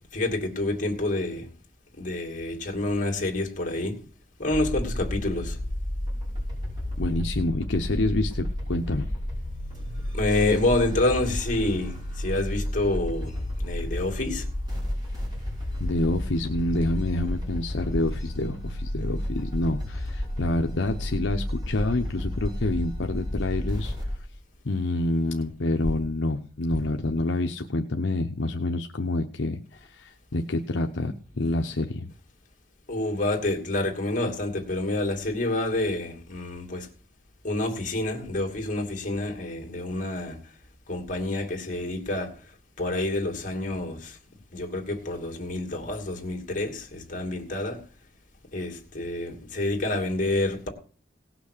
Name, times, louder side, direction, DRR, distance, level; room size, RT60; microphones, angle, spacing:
voice 1, 0.1-1.5 2.0-3.9 4.4-5.6 10.1-14.5 32.9-36.9 37.4-40.4 40.9-42.3 42.8-44.2 44.5-47.8 48.5-50.7, left 2 dB, 40° left, 2.6 m, -28 dB
sound 1, 4.5-24.2, left 1 dB, 25° right, 5.7 m, -31 dB
voice 2, 7.0-9.1 15.8-23.9 24.6-32.1, left 2 dB, 75° left, 0.8 m, -27 dB
18.0 x 6.1 x 6.7 m
head